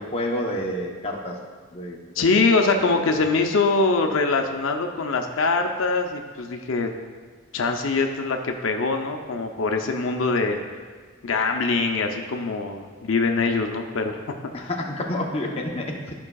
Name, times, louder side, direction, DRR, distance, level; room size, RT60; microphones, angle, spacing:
voice 1, 0.0-1.4 1.7-2.2 2.7-2.9 14.5-16.0, left 1 dB, 30° left, 0 dB, 0.8 m, -29 dB
voice 2, 2.2-6.9 7.5-10.6 11.2-14.2 14.6-14.7, left 3 dB, 90° left, 4 dB, 0.6 m, -23 dB
12.0 x 5.4 x 2.3 m, 1.5 s
head